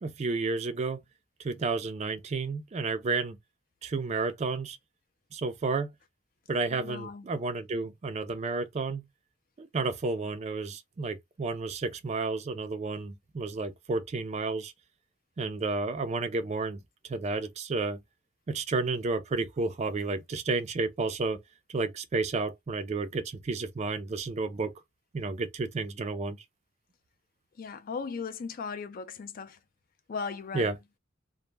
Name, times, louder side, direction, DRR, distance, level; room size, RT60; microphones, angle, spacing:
voice 1, 0.0-1.0 1.4-3.4 3.8-4.8 5.3-5.9 6.5-9.0 9.6-14.7 15.4-18.0 18.5-21.4 21.7-24.7 25.1-26.4 30.5-30.8, right 3 dB, 35° right, 0.4 m, -31 dB
voice 2, 6.7-7.3 27.6-29.6 30.1-30.8, left 5 dB, 45° left, 0.3 m, -37 dB
2.1 x 2.0 x 3.2 m
head